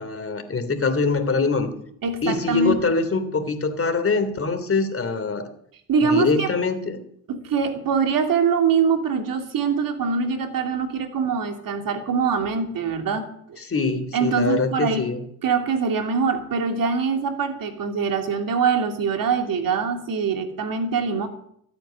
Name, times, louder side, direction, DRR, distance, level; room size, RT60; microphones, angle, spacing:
voice 1, 0.0-1.7 2.2-5.5 6.0-7.0 13.6-15.2, left 3 dB, 35° left, 9 dB, 3.2 m, -24 dB
voice 2, 2.0-2.8 5.9-6.5 7.3-13.6 14.1-15.1 15.4-21.3, right 5 dB, 55° right, 6 dB, 3.0 m, -23 dB
13.5 x 9.2 x 8.9 m, 0.68 s
hypercardioid pair, 55°, 40 cm